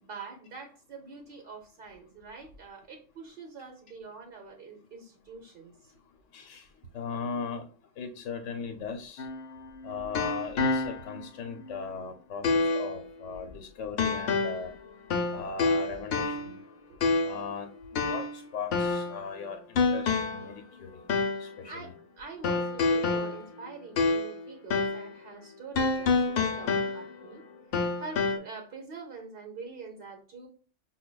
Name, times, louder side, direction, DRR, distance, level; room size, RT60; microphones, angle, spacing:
voice 1, 0.0-6.0 16.9-17.0 21.6-27.4 27.7-30.5, right 4 dB, 55° right, 2 dB, 0.7 m, -45 dB
voice 2, 6.3-6.7 6.9-7.7 8.0-9.3 9.8-14.7 15.3-16.6 17.2-21.0 21.4-21.9, left 5 dB, 90° left, 4 dB, 1.0 m, -38 dB
sound 1, 9.2-11.2 11.7-11.8 12.4-13.0 14.0-14.7 15.1-16.6 17.0-17.5 17.9-19.2 19.8-20.5 21.1-21.5 22.4-24.4 24.7-25.1 25.8-27.3 27.7-28.4, left 3 dB, 60° left, 0.7 m, -28 dB
5.7 x 2.2 x 2.2 m, 0.38 s
omnidirectional pair, 1.3 m